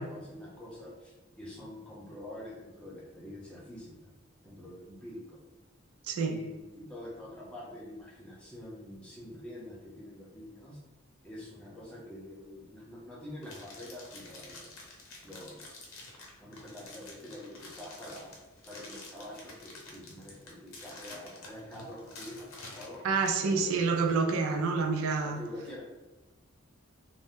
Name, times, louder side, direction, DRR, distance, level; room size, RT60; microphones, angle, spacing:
voice 1, 0.0-4.1 4.4-5.4 6.2-10.8 11.2-14.8 15.2-16.0 16.4-18.3 18.7-23.1 23.4-24.4 25.2-25.8, left 1 dB, 5° left, -6 dB, 0.6 m, -46 dB
voice 2, 6.0-6.4 23.0-25.4, right 4 dB, 90° right, 5 dB, 0.4 m, -28 dB
sound 1, 13.4-23.5, left 2 dB, 80° left, 0.7 m, -49 dB
2.7 x 2.0 x 3.5 m, 1.1 s
head